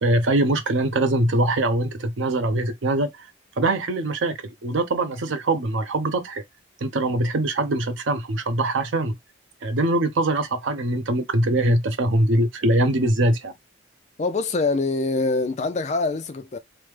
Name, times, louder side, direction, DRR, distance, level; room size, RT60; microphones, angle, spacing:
voice 1, 0.0-3.3 3.6-6.4 6.8-9.2 9.6-13.5, right 1 dB, 75° right, 0.6 m, -22 dB
voice 2, 14.2-16.6, left 3 dB, 35° left, 0.4 m, -24 dB
3.2 x 2.1 x 3.2 m
head